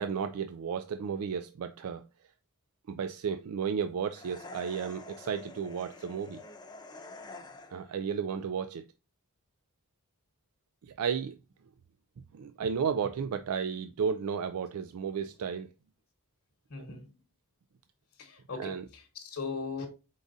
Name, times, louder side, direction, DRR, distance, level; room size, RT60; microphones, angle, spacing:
voice 1, 0.0-2.1 2.9-6.4 7.7-8.8 10.8-11.4 12.3-15.7 16.8-16.9 18.6-18.8, right 6 dB, 80° right, 0.4 m, -33 dB
sound 1, 4.1-8.0, left 3 dB, 20° left, 0.6 m, -48 dB
voice 2, 16.7-17.1 18.2-19.9, left 4 dB, 65° left, 1.1 m, -39 dB
4.8 x 3.7 x 2.5 m
head